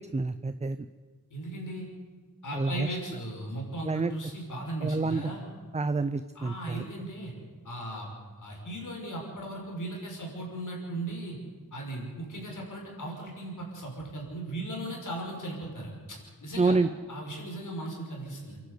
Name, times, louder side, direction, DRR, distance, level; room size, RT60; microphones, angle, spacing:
voice 1, 0.1-0.8 2.5-2.9 3.8-4.1 4.8-5.2 5.7-6.8 16.6-16.9, right 3 dB, 20° right, 11 dB, 0.5 m, -27 dB
voice 2, 1.3-1.9 2.4-5.4 6.3-7.3 7.6-8.1 8.4-11.4 11.7-16.8 17.1-18.6, right 1 dB, 55° left, 0 dB, 5.7 m, -37 dB
29.0 x 11.5 x 8.3 m, 1.4 s
wide cardioid pair, 130°, 36 cm